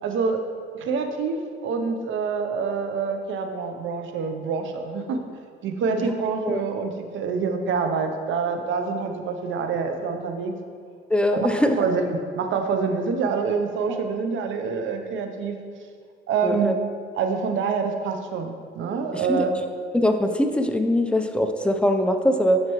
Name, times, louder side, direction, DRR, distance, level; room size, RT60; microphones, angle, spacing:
voice 1, 0.0-0.4 0.7-5.2 5.6-10.5 11.3-15.6 16.3-16.7 17.2-19.5, right 5 dB, 75° right, 6 dB, 0.7 m, -26 dB
voice 2, 11.1-11.8 13.9-14.0 16.4-16.8 19.3-19.5 19.9-22.6, left 1 dB, 5° left, 6 dB, 0.5 m, -22 dB
9.4 x 4.4 x 3.0 m, 2.1 s
cardioid pair, 90°, 20 cm